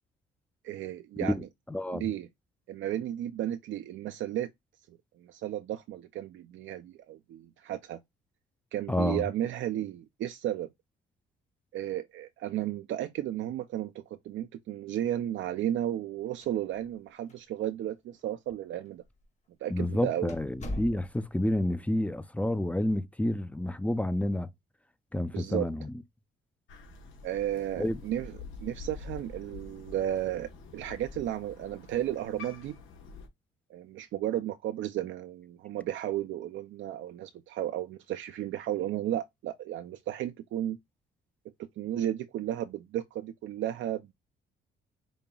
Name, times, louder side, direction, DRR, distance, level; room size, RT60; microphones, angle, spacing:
voice 1, 0.6-1.5 1.9-2.3 2.7-4.5 4.9-8.0 8.7-10.7 11.7-19.0 19.6-20.3 25.3-25.7 27.2-32.8 33.7-40.8 41.8-44.1, right 12 dB, 75° right, 0.5 m, -34 dB
voice 2, 1.2-2.1 8.9-9.3 19.7-24.5 25.1-25.9 27.8-28.0, left 1 dB, 5° left, 0.5 m, -29 dB
sound 1, 16.3-17.0 17.3-17.4 18.2-18.3 19.0-19.2 19.6-19.7 20.3-21.4, left 1 dB, 35° left, 1.5 m, -40 dB
Crow, 26.7-33.3, left 4 dB, 80° left, 1.2 m, -47 dB
5.3 x 2.8 x 2.3 m
cardioid pair, 90°, 20 cm